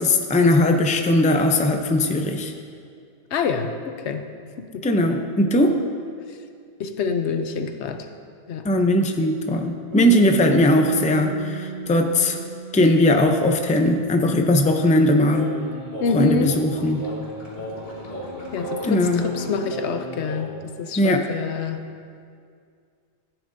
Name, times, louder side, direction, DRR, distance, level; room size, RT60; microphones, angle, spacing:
voice 1, 0.0-2.5 4.8-5.8 8.6-12.4 12.7-15.5 16.1-17.0 18.8-19.2 21.0-21.3, left 1 dB, 10° left, 4 dB, 0.4 m, -19 dB
voice 2, 3.3-4.2 4.6-5.0 6.8-8.1 8.5-8.7 10.5-10.7 16.0-16.5 18.5-20.5 20.8-21.8, left 5 dB, 85° left, 7 dB, 1.0 m, -26 dB
sound 1, 9.9-14.1, right 6 dB, 65° right, 1.7 m, -34 dB
sound 2, 15.3-20.5, equal, 60° left, 2.0 m, -35 dB
15.5 x 10.0 x 2.7 m, 2.3 s
omnidirectional pair, 1.1 m